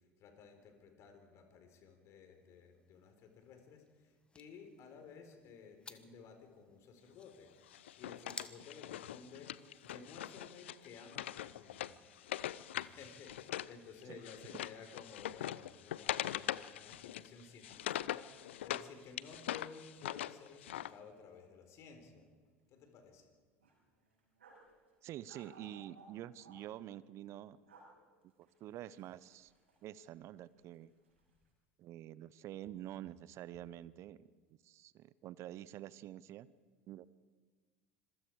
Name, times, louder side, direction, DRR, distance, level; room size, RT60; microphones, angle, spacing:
voice 1, 0.0-12.0 12.7-22.3 22.7-23.3, left 5 dB, 50° left, 6 dB, 4.2 m, -55 dB
sound 1, 2.3-10.1, left 3 dB, 15° left, 1.3 m, -57 dB
Wood, 7.7-13.7 14.0-18.9 19.2-20.9, left 12 dB, 70° left, 0.5 m, -42 dB
sound 2, 21.0-21.1 21.4-21.5 22.0-22.6 23.0-23.1 23.6-24.7 25.3-26.6 27.5-27.9 28.3-30.3 30.6-31.3, right 3 dB, 80° right, 6.3 m, -61 dB
voice 2, 25.0-27.6 28.4-29.5 29.8-30.9 31.8-34.3 34.6-36.5 36.9-37.1, right 13 dB, 45° right, 19 dB, 0.8 m, -48 dB
26.0 x 22.5 x 4.8 m, 1.5 s
figure-of-eight pair, 70°, 6 cm